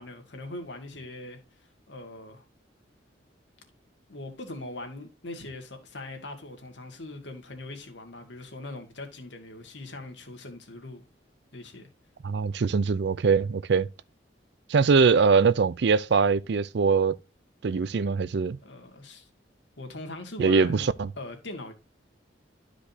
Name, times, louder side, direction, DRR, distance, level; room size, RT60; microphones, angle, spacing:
voice 1, 0.0-1.4 1.9-2.4 4.1-11.0 11.5-11.9 18.6-19.3 19.8-20.9 21.2-21.7, left 2 dB, 75° left, 1.9 m, -41 dB
voice 2, 12.2-13.9 14.7-17.2 17.6-18.6 20.4-21.1, right 5 dB, 65° right, 0.4 m, -22 dB
12.0 x 5.0 x 2.7 m
head